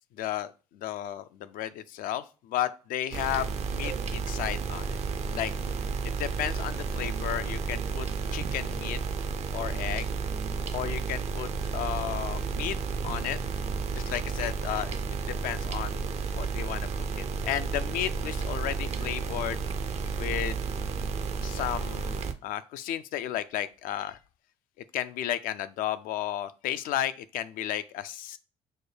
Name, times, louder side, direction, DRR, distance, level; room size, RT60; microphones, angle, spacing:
voice 1, 0.2-5.0 5.3-5.5 6.0-8.1 8.3-9.0 9.5-10.1 10.7-12.8 13.0-13.4 13.9-16.1 16.3-16.9 17.2-19.6 20.2-20.6 21.4-24.2 24.9-28.4, left 12 dB, 60° left, 13 dB, 0.4 m, -33 dB
sound 1, 3.1-22.3, right 5 dB, 45° right, 0.5 m, -32 dB
6.4 x 2.2 x 3.1 m, 0.34 s
hypercardioid pair, 55°, 16 cm